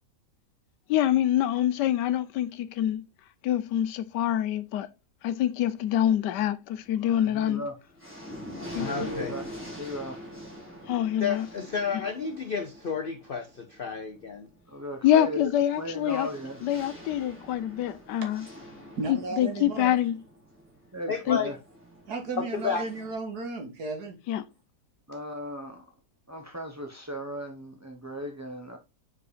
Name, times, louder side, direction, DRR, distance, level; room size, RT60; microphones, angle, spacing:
voice 1, 0.9-3.0 3.4-4.9 5.2-7.6 8.7-9.1 10.9-11.5 15.0-16.3 16.6-18.4 19.1-20.2 21.3-21.4 24.3-24.4, left 11 dB, 80° left, 1.2 m, -25 dB
sound 1, 6.8-7.3 7.7-23.1, equal, 5° right, 2.1 m, -45 dB
voice 2, 7.0-7.7 8.8-9.5 9.8-10.3 14.7-15.4 15.8-16.7 20.9-21.6 25.1-25.9 26.3-28.8, equal, 25° right, 0.3 m, -36 dB
voice 3, 8.8-9.3 11.2-14.5 21.1-21.5 22.4-22.8, left 6 dB, 60° left, 0.5 m, -31 dB
voice 4, 19.0-20.0 22.1-24.2, right 3 dB, 65° right, 2.2 m, -34 dB
4.9 x 4.9 x 4.9 m
omnidirectional pair, 1.9 m